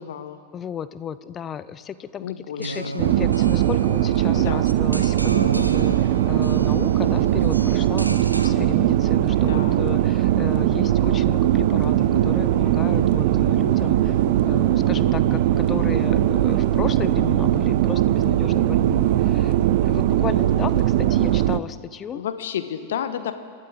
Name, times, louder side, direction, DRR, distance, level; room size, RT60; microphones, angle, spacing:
voice 1, 0.0-0.4 2.2-2.8 4.3-4.6 9.5-9.8 22.1-23.3, left 9 dB, 60° left, 10 dB, 1.0 m, -31 dB
voice 2, 0.5-2.3 2.6-14.2 14.4-19.5 19.8-22.2, left 8 dB, 25° left, 15 dB, 0.6 m, -34 dB
sound 1, 2.6-8.5, right 1 dB, 85° right, 0.7 m, -33 dB
sound 2, 3.0-21.6, right 12 dB, 50° right, 0.5 m, -20 dB
sound 3, 7.6-20.8, right 4 dB, 30° right, 2.2 m, -40 dB
28.0 x 12.0 x 3.7 m, 2.1 s
figure-of-eight pair, 90°, 0 cm